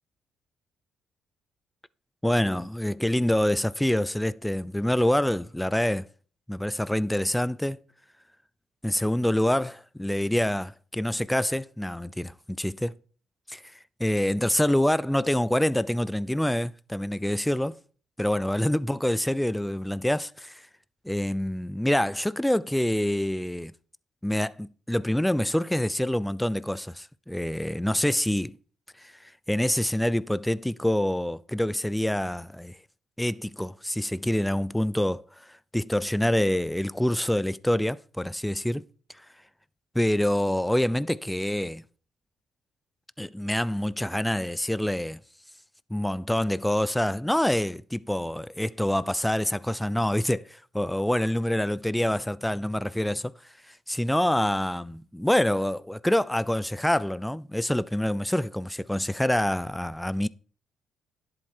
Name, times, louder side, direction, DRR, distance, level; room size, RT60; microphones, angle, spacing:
voice 1, 2.2-6.1 6.5-7.8 8.8-12.9 13.5-13.6 14.0-17.8 18.2-20.6 21.0-23.7 24.2-28.6 29.0-32.8 33.2-35.2 35.5-38.8 39.9-41.8 43.2-45.2 45.9-53.3 53.9-60.3, left 1 dB, 5° left, 0.5 m, -26 dB
11.0 x 7.9 x 4.4 m
cardioid pair, 90°, 0 cm